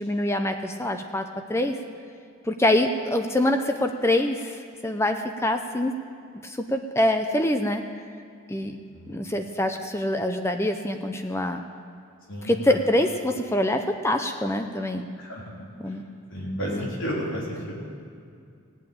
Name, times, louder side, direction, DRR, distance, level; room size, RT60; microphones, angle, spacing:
voice 1, 0.0-1.8 2.5-5.9 6.4-7.8 8.5-8.8 9.1-11.6 12.5-15.1 15.8-16.0 16.7-16.8, left 1 dB, 10° left, 6 dB, 0.5 m, -25 dB
voice 2, 16.3-17.7, equal, 60° left, -3 dB, 3.6 m, -32 dB
16.5 x 8.8 x 8.7 m, 2.4 s
head